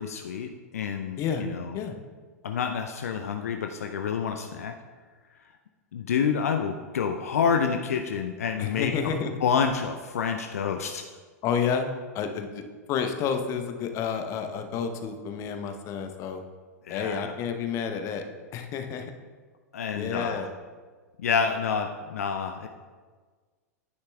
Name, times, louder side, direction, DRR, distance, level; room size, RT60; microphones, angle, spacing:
voice 1, 0.0-1.8 2.4-4.7 5.9-9.1 9.4-11.0 16.8-17.3 19.7-20.5 21.2-22.7, left 6 dB, 65° left, 5 dB, 0.5 m, -28 dB
voice 2, 8.6-9.3 11.4-11.9 12.1-12.6 12.9-16.4 16.9-18.2 18.5-19.1 19.9-20.5, left 7 dB, 35° left, 7 dB, 0.8 m, -30 dB
9.8 x 9.7 x 2.3 m, 1.5 s
figure-of-eight pair, 95°, 9 cm